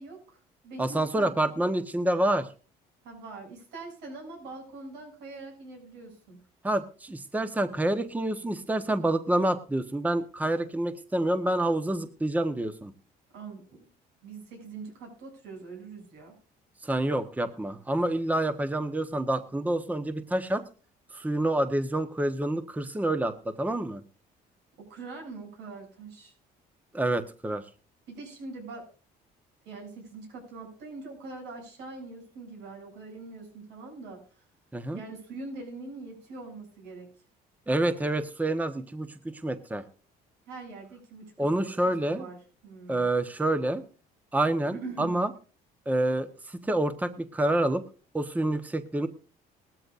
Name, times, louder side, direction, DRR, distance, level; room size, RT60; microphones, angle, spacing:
voice 1, 0.0-1.3 3.0-6.4 13.3-13.9 14.2-16.3 24.8-26.3 28.1-28.9 29.6-34.4 34.9-37.1 40.5-42.4 42.6-43.1 44.7-45.1, right 3 dB, 85° right, 2 dB, 7.7 m, -43 dB
voice 2, 0.8-2.5 6.6-12.9 16.8-20.6 21.1-24.0 26.9-27.6 34.7-35.0 37.7-39.8 41.4-42.3 42.9-43.8 44.3-45.3 45.9-47.8 48.1-49.1, right 1 dB, 10° right, 10 dB, 1.1 m, -28 dB
19.5 x 13.5 x 2.5 m, 0.35 s
cardioid pair, 110°, 17 cm